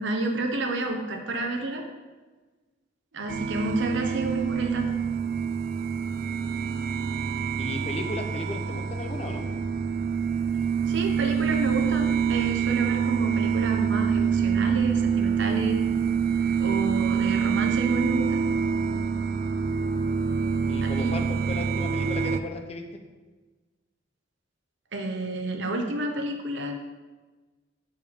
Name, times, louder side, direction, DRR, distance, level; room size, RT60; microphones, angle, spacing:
voice 1, 0.0-1.8 3.1-4.9 10.9-15.8 16.6-18.5 20.8-21.2 24.9-26.8, right 2 dB, 70° right, 3 dB, 0.9 m, -30 dB
sound 1, 3.3-22.4, right 6 dB, 50° right, 0.3 m, -26 dB
voice 2, 7.6-9.5 20.7-22.8, left 1 dB, 35° left, 5 dB, 0.7 m, -35 dB
6.7 x 4.5 x 5.1 m, 1.3 s
head